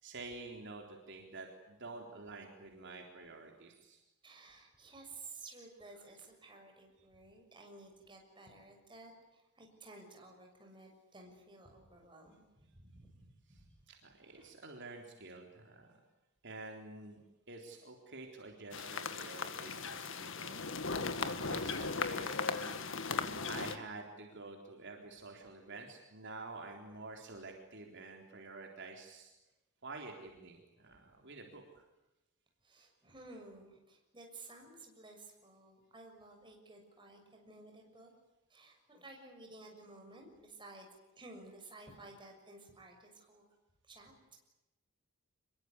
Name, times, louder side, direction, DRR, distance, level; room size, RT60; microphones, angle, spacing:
voice 1, 0.0-4.0 5.8-6.1 13.5-13.6 13.9-15.9 16.4-17.2 17.5-20.6 21.2-22.8 23.5-29.3 29.8-31.8, right 3 dB, 55° right, 1 dB, 3.9 m, -49 dB
voice 2, 4.2-13.7 14.2-14.5 32.6-38.1 38.5-40.9 41.1-43.4 43.8-44.1, right 2 dB, 20° right, 2 dB, 6.7 m, -54 dB
sound 1, 18.7-23.8, left 4 dB, 60° left, 1.8 m, -37 dB
26.0 x 22.5 x 9.8 m, 0.99 s
head